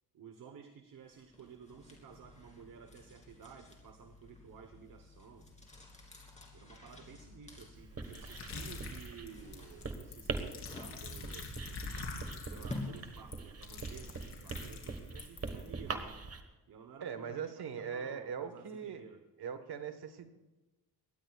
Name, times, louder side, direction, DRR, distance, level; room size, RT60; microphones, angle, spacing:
voice 1, 0.1-5.5 6.5-11.6 12.5-16.2 16.7-19.3, right 7 dB, 55° right, 6 dB, 1.1 m, -53 dB
sound 1, 1.1-13.5, left 2 dB, 15° left, 2.8 m, -51 dB
Writing, 7.8-16.4, right 4 dB, 35° right, 1.4 m, -43 dB
sound 2, 8.0-15.7, left 4 dB, 80° left, 3.5 m, -45 dB
voice 2, 17.0-19.0 19.4-20.3, right 7 dB, 75° right, 9 dB, 1.4 m, -40 dB
22.5 x 18.5 x 2.4 m, 1.1 s
wide cardioid pair, 160°, 40 cm